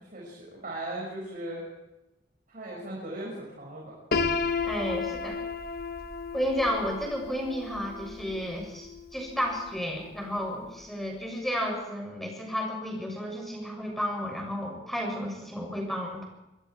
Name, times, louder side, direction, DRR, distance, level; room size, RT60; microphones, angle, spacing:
voice 1, 0.0-1.6 2.5-3.9, right 1 dB, 45° right, -4 dB, 6.3 m, -38 dB
Piano, 4.1-10.0, left 4 dB, 55° left, 1.4 m, -33 dB
voice 2, 4.6-5.4 6.3-16.2, equal, ahead, 1 dB, 7.1 m, -32 dB
26.5 x 20.5 x 4.8 m, 0.94 s
head